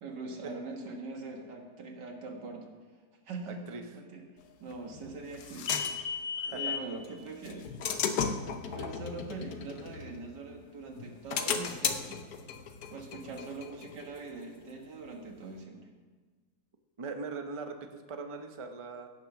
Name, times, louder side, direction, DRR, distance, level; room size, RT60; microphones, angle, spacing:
voice 1, 0.0-2.7 3.3-3.6 3.9-4.2 4.6-5.8 6.4-7.7 8.6-12.2 12.9-15.9, right 3 dB, 85° right, 2 dB, 2.2 m, -42 dB
sound 1, 4.7-6.9 7.5-10.6 11.0-14.4, left 6 dB, 65° left, 1.3 m, -35 dB
voice 2, 6.4-6.8 17.0-19.1, right 4 dB, 30° right, 6 dB, 0.5 m, -40 dB
16.0 x 6.6 x 5.8 m, 1.4 s
omnidirectional pair, 1.8 m